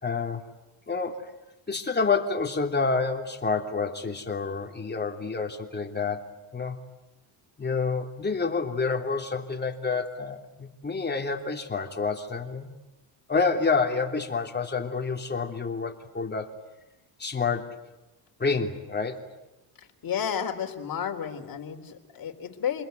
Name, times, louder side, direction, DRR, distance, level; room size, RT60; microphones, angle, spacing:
voice 1, 0.0-0.4 0.9-1.3 1.7-6.8 7.6-12.7 13.3-16.5 17.2-17.8 18.4-19.2, left 4 dB, 20° left, 3 dB, 3.2 m, -28 dB
voice 2, 19.8-22.9, left 8 dB, 45° left, 3 dB, 3.8 m, -32 dB
29.0 x 21.5 x 9.4 m, 0.99 s
cardioid pair, 95°, 47 cm